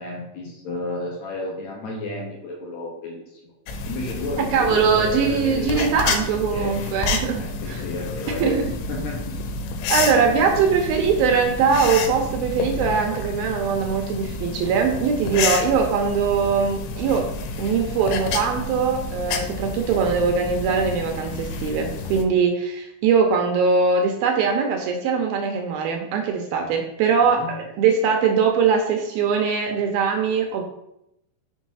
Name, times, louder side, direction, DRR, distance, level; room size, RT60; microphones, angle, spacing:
voice 1, 0.0-3.5 3.8-5.9 6.5-6.8 7.4-8.6 8.9-9.4 27.2-27.6, left 1 dB, 70° left, -1 dB, 1.7 m, -31 dB
sound 1, 3.7-22.2, left 4 dB, 90° left, 2.9 m, -29 dB
voice 2, 4.4-7.8 8.4-8.6 9.9-17.3 17.6-30.6, right 6 dB, 75° right, 3 dB, 2.2 m, -21 dB
6.2 x 4.0 x 5.5 m, 0.82 s
omnidirectional pair, 4.8 m